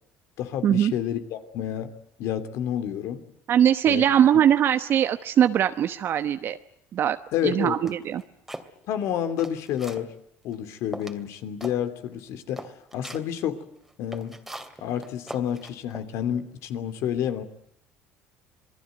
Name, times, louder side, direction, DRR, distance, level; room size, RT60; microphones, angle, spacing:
voice 1, 0.4-1.9 2.2-3.2 3.9-4.0 7.3-7.8 8.9-10.1 10.4-13.6 14.0-14.3 14.8-17.4, left 10 dB, 65° left, 10 dB, 2.9 m, -29 dB
voice 2, 3.5-6.6 6.9-7.2 7.4-8.2, right 10 dB, 50° right, 9 dB, 1.0 m, -21 dB
sound 1, 7.8-8.7 9.2-10.1 10.5-10.6 10.9-11.2 11.6-11.8 12.1-12.2 12.6-13.3 13.8-16.1, right 1 dB, 5° right, 2.6 m, -40 dB
27.0 x 20.0 x 9.3 m, 0.75 s
cardioid pair, 120°, 5 cm